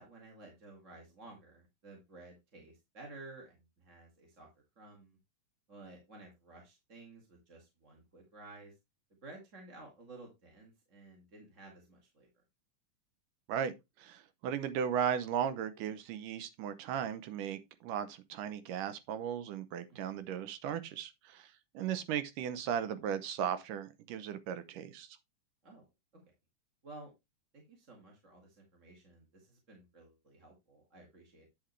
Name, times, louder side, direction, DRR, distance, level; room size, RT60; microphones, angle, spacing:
voice 1, 0.0-4.5 4.8-5.2 5.7-8.7 9.2-12.3 19.9-20.2 25.6-25.9 26.8-27.1 27.5-31.5, right 2 dB, 30° right, 1.8 m, -54 dB
voice 2, 14.0-25.1, right 8 dB, 80° right, 2.4 m, -36 dB
9.7 x 5.9 x 3.2 m
omnidirectional pair, 3.8 m